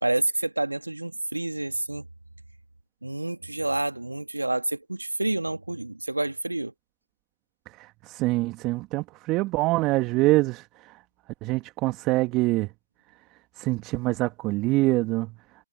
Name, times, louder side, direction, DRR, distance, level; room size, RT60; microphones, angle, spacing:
voice 1, 0.0-2.1 3.0-6.7, right 2 dB, 90° right, 2.2 m, -28 dB
voice 2, 7.7-11.0 11.4-12.7 13.6-15.3, right 20 dB, 15° right, 1.9 m, -25 dB
figure-of-eight pair, 150°, 0 cm